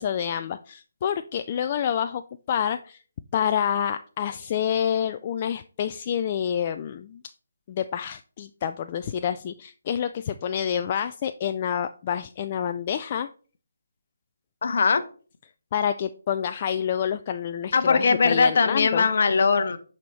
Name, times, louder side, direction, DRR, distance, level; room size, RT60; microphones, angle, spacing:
voice 1, 0.0-2.2 2.5-3.0 3.3-7.2 7.7-13.3 15.7-19.1, left 9 dB, 35° left, 9 dB, 0.3 m, -28 dB
voice 2, 14.6-15.0 17.7-19.8, left 4 dB, 55° left, 10 dB, 0.9 m, -20 dB
11.0 x 4.3 x 3.2 m, 0.40 s
figure-of-eight pair, 150°, 0 cm